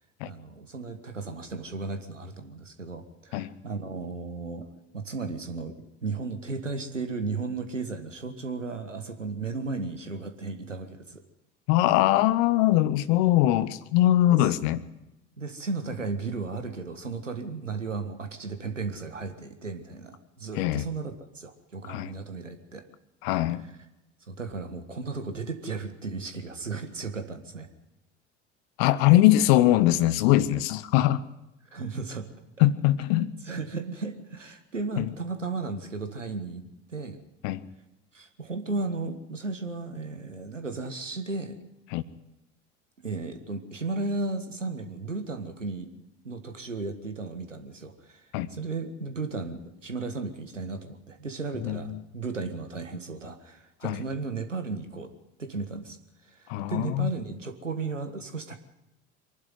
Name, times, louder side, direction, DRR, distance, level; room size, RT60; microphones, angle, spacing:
voice 1, 0.2-4.7 4.9-11.2 14.3-14.5 15.4-22.8 24.3-27.7 31.7-32.3 33.5-37.2 38.1-41.6 43.0-45.9 46.2-55.1 55.4-56.0 56.2-58.6, right 3 dB, 85° right, 8 dB, 1.6 m, -35 dB
voice 2, 11.7-14.8 20.6-20.9 21.9-22.1 23.2-23.6 28.8-31.2 32.6-33.3 35.0-35.1 37.4-37.6 41.9-42.0 48.3-48.5 51.6-52.0 53.8-54.0 56.5-57.1, left 14 dB, 55° left, 17 dB, 1.1 m, -22 dB
24.0 x 11.5 x 9.5 m, 0.95 s
figure-of-eight pair, 65°, 36 cm